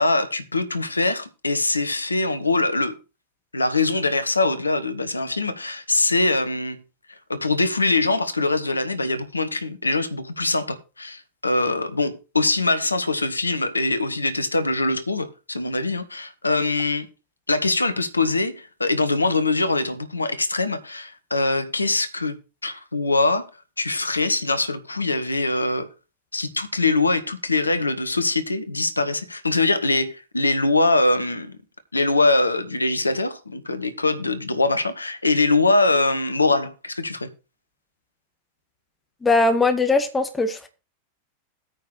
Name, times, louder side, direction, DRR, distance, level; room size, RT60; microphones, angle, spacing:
voice 1, 0.0-3.0 3.5-6.8 7.3-17.1 17.5-22.4 22.6-23.5 23.8-25.9 26.3-31.6 31.9-37.3, left 2 dB, 80° left, 1.2 m, -23 dB
voice 2, 39.2-40.7, left 3 dB, 10° left, 2.1 m, -20 dB
9.3 x 5.8 x 6.5 m
figure-of-eight pair, 90°, 0 cm